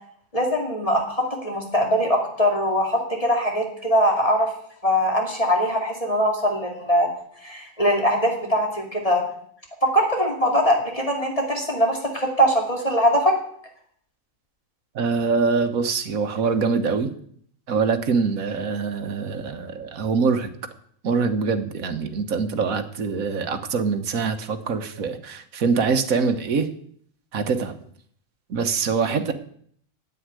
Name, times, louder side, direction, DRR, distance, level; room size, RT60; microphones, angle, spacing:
voice 1, 0.3-4.5 4.8-7.1 7.4-9.2 9.9-13.3, equal, 25° left, 1 dB, 2.6 m, -22 dB
voice 2, 14.9-17.1 17.7-20.5 21.0-26.7 27.3-27.8 28.5-29.3, right 5 dB, 75° right, 8 dB, 1.6 m, -24 dB
9.7 x 8.6 x 9.6 m, 0.63 s
omnidirectional pair, 1.4 m